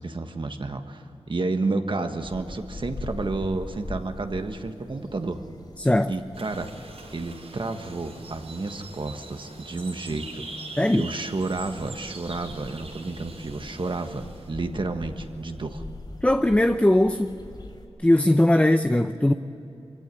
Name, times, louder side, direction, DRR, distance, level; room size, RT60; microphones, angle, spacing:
voice 1, 0.0-5.4 6.1-6.7 7.1-15.8, right 3 dB, 50° right, 6 dB, 1.6 m, -31 dB
sound 1, 2.2-17.9, left 1 dB, 45° left, 5.7 m, -43 dB
voice 2, 5.8-6.1 10.8-11.1 16.2-17.4 18.0-19.3, left 1 dB, 10° left, 8 dB, 0.7 m, -20 dB
sound 2, 6.3-14.5, right 2 dB, 80° right, 6.2 m, -43 dB
23.5 x 16.5 x 9.7 m, 2.8 s
wide cardioid pair, 70°, 11 cm